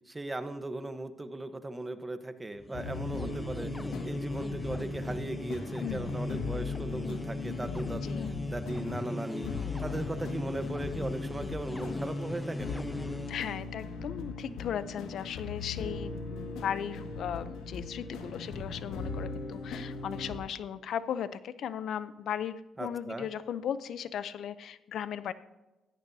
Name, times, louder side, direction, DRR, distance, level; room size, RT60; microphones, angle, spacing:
voice 1, 0.1-9.5 9.8-13.0 22.8-23.3, right 2 dB, 20° right, 10 dB, 1.0 m, -38 dB
sound 1, 2.6-13.6, left 1 dB, 10° left, 0.3 m, -38 dB
sound 2, 2.7-20.4, left 4 dB, 90° left, 1.8 m, -39 dB
voice 2, 5.8-6.2 8.0-8.3 13.3-25.3, left 9 dB, 70° left, 14 dB, 0.6 m, -37 dB
16.0 x 13.5 x 2.8 m, 1.1 s
cardioid pair, 90°, 0 cm